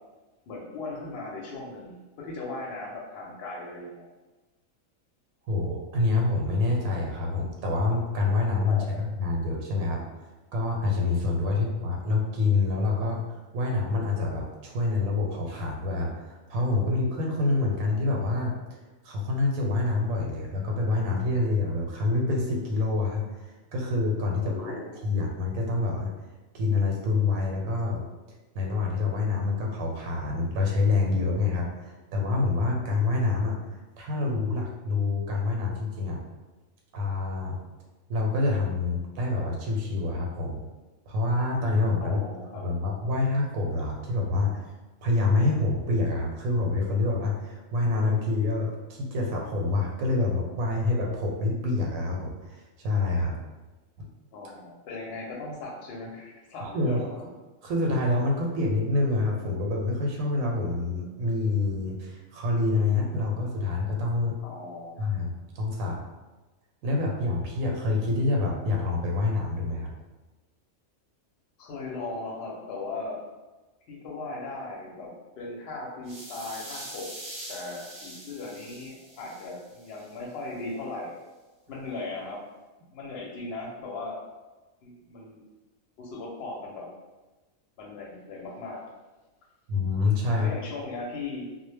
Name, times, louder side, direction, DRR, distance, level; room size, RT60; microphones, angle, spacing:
voice 1, 0.5-4.1 8.7-9.1 11.5-11.6 24.3-24.9 42.0-42.7 54.3-57.2 64.4-65.0 71.6-73.2 73.9-77.1 77.5-81.1 81.7-82.4 82.9-84.2 84.8-85.4 86.0-86.9 87.8-88.8 90.4-91.5, left 3 dB, 60° left, -2 dB, 0.7 m, -38 dB
voice 2, 5.5-10.0 10.5-13.2 13.5-18.5 19.0-24.7 25.0-26.1 26.5-28.0 28.5-33.6 34.0-36.2 36.9-37.6 38.1-40.7 41.1-42.2 42.6-44.6 45.0-53.3 56.6-57.1 57.6-64.3 65.0-66.0 66.8-69.9 89.7-90.5, left 3 dB, 90° right, 0 dB, 1.0 m, -27 dB
sound 1, 76.0-80.1, right 1 dB, 55° right, 0.3 m, -43 dB
2.1 x 2.1 x 3.2 m, 1.2 s
omnidirectional pair, 1.4 m